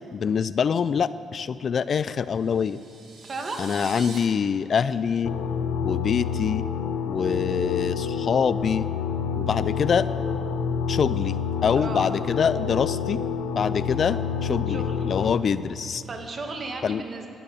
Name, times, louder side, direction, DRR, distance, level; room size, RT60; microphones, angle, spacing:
voice 1, 0.1-2.8 3.6-5.3 5.8-6.6 7.1-8.9 9.3-10.1 10.9-11.4 11.6-13.2 13.5-16.0 16.8-17.0, left 6 dB, 50° left, 16 dB, 0.4 m, -25 dB
sound 1, 2.3-4.2, right 4 dB, 60° right, 3.1 m, -43 dB
voice 2, 3.2-3.6 11.8-12.1 14.7-15.1 16.0-17.3, right 3 dB, 40° right, 3 dB, 2.2 m, -34 dB
sound 2, 5.3-15.4, left 7 dB, 90° left, 1.1 m, -28 dB
12.5 x 12.0 x 8.4 m, 2.7 s
cardioid pair, 90°, 0 cm